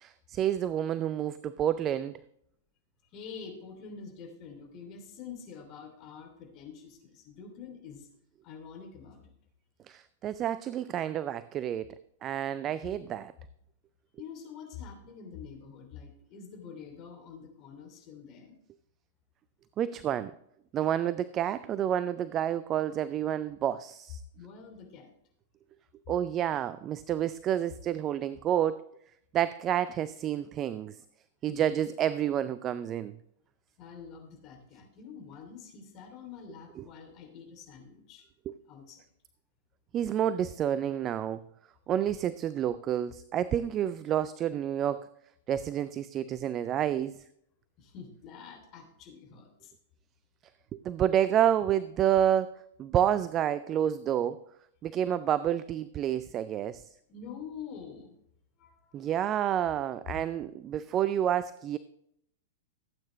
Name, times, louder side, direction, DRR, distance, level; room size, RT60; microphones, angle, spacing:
voice 1, 0.0-2.2 9.9-11.9 12.2-13.3 19.8-20.3 20.7-24.2 26.1-28.8 29.3-31.0 31.4-33.1 36.8-36.9 38.5-38.6 39.9-41.4 41.9-45.1 45.5-47.1 50.7-54.4 54.8-56.8 58.9-61.8, right 10 dB, 30° right, 16 dB, 0.4 m, -29 dB
voice 2, 3.1-8.1 8.4-9.3 14.2-18.6 24.3-25.1 31.5-31.7 33.8-38.3 38.7-39.0 47.8-49.7 57.1-58.2 58.6-59.2, left 6 dB, 40° left, 3 dB, 3.0 m, -46 dB
16.0 x 8.6 x 3.2 m, 0.75 s
figure-of-eight pair, 100°, 0 cm